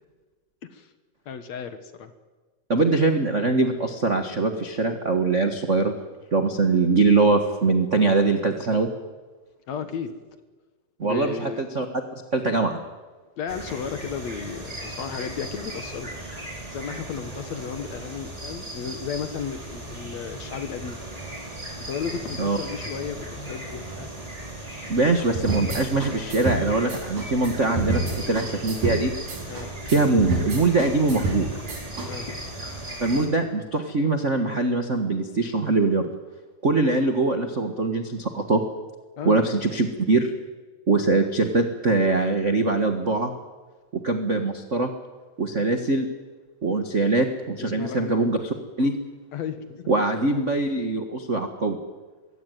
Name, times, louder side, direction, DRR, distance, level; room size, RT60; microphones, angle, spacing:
voice 1, 1.3-2.1 9.7-10.2 11.0-11.6 13.4-16.1 16.7-21.0 21.9-24.1 29.5-29.9 32.1-32.4 39.2-39.5 47.6-48.3 49.3-49.9, left 7 dB, 60° left, 10 dB, 2.5 m, -34 dB
voice 2, 2.7-5.9 6.3-8.9 11.0-11.9 12.3-12.8 22.4-22.6 24.9-29.1 29.9-31.5 33.0-36.1 36.6-38.6 39.2-40.3 40.9-43.3 44.0-44.9 45.4-46.1 46.6-48.4 48.8-48.9 49.9-51.8, right 3 dB, 45° right, 6 dB, 1.0 m, -22 dB
sound 1, 13.5-33.3, right 1 dB, 10° right, 4.1 m, -37 dB
sound 2, 25.4-32.1, right 2 dB, 70° right, 6.3 m, -29 dB
22.5 x 16.5 x 9.4 m, 1.3 s
omnidirectional pair, 3.7 m